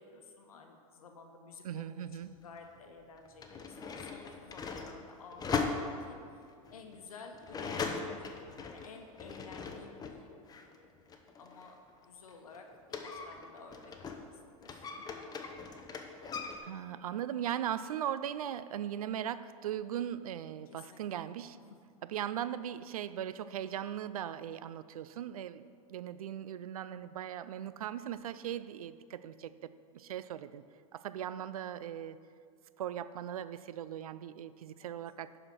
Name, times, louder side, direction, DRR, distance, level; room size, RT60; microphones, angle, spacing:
voice 1, 0.0-6.5 6.7-11.8 12.0-12.7 13.0-14.9 20.7-21.2 34.8-35.0, left 4 dB, 85° left, 4 dB, 1.0 m, -53 dB
voice 2, 1.6-2.3 16.6-21.6 22.0-30.6 30.9-32.2 32.8-35.4, right 10 dB, 80° right, 14 dB, 0.4 m, -39 dB
sound 1, 2.2-2.3 3.2-10.2 10.5-14.3 14.6-16.6, left 5 dB, 20° left, 0.9 m, -39 dB
10.5 x 5.0 x 5.9 m, 2.3 s
hypercardioid pair, 105°, 18 cm